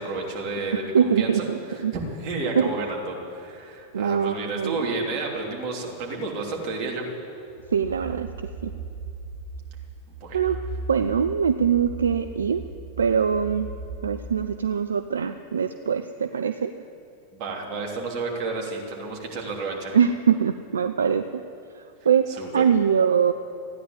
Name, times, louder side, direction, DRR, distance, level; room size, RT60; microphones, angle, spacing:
voice 1, 0.0-7.1 10.2-10.4 17.3-20.0 22.3-22.6, right 3 dB, 40° right, -2 dB, 3.2 m, -31 dB
voice 2, 0.9-1.9 2.6-2.7 3.9-4.8 7.7-8.3 8.6-8.7 10.3-10.6 10.9-12.6 13.0-13.7 14.0-16.8 19.9-21.4 21.7-23.3, right 7 dB, 70° right, 9 dB, 0.4 m, -23 dB
sound 1, 7.5-14.3, right 3 dB, 90° right, 2.4 m, -38 dB
14.5 x 10.0 x 8.3 m, 2.6 s
figure-of-eight pair, 90°, 0 cm